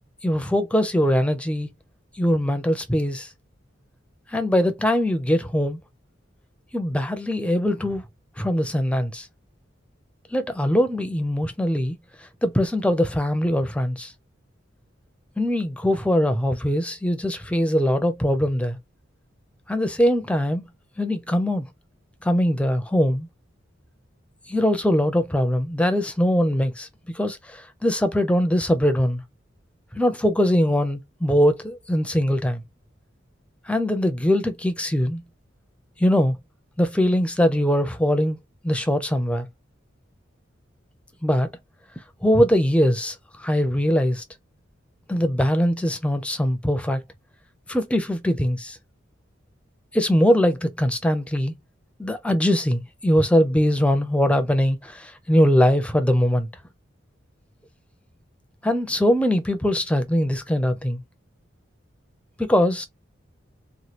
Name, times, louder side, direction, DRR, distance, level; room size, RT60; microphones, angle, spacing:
voice 1, 0.2-1.7 2.2-3.3 4.3-5.8 6.7-8.0 8.4-9.3 10.3-12.0 12.4-14.1 15.4-18.8 19.7-20.7 21.0-21.7 22.2-23.3 24.5-26.9 27.1-29.2 29.9-32.6 33.7-35.2 36.0-36.4 36.8-38.4 38.6-39.5 41.2-41.5 42.2-44.2 45.1-47.0 47.7-48.8 49.9-51.5 52.0-56.5 58.6-61.0 62.4-62.9, equal, 5° left, 0.5 m, -21 dB
3.1 x 2.2 x 2.8 m
head